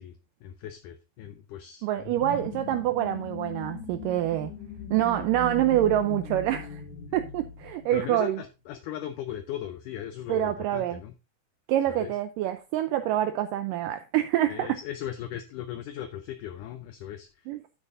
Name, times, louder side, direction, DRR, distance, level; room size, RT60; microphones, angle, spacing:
voice 1, 0.0-1.9 7.9-11.1 11.9-12.2 14.5-17.5, left 11 dB, 75° left, 2.0 m, -38 dB
voice 2, 1.8-4.5 4.9-6.8 7.1-8.4 10.3-11.0 11.7-14.7 17.5-17.6, right 12 dB, 80° right, 2.1 m, -26 dB
sound 1, 1.9-8.4, left 5 dB, 60° left, 2.8 m, -39 dB
10.5 x 8.9 x 2.5 m
omnidirectional pair, 4.3 m